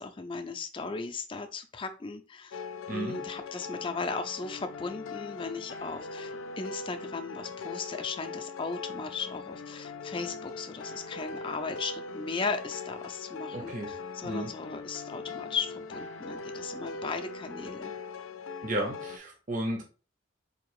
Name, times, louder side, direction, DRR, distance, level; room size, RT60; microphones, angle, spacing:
voice 1, 0.0-2.6 2.9-17.9, left 4 dB, 25° left, 7 dB, 0.4 m, -37 dB
sound 1, 2.5-19.2, left 4 dB, 85° left, 0.4 m, -41 dB
voice 2, 2.9-3.2 13.5-13.9 14.2-14.5 18.6-19.8, right 1 dB, 40° right, 1 dB, 0.7 m, -33 dB
4.4 x 2.8 x 3.1 m, 0.35 s
head